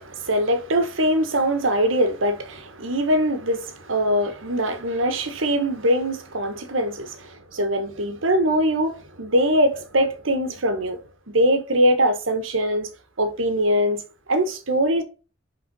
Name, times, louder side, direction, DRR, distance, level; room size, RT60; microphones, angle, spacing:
voice 1, 0.0-11.0 11.3-12.9 13.2-14.0 14.3-15.0, equal, 75° right, 1.2 m, -22 dB
5.4 x 4.0 x 5.3 m
head